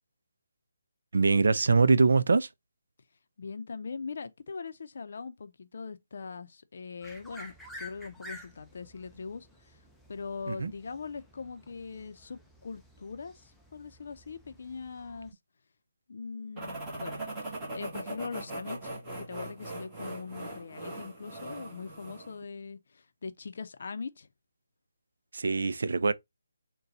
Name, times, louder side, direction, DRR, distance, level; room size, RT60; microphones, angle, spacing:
voice 1, 1.1-2.5 10.5-10.7 25.3-26.1, right 4 dB, 70° right, 0.5 m, -23 dB
voice 2, 3.4-9.8 10.1-15.3 16.1-24.3, left 5 dB, 60° left, 0.6 m, -41 dB
sound 1, 7.0-15.3, left 1 dB, ahead, 0.5 m, -51 dB
sound 2, 16.6-22.4, right 2 dB, 15° right, 1.4 m, -40 dB
4.0 x 2.2 x 3.8 m
hypercardioid pair, 160°, 0 cm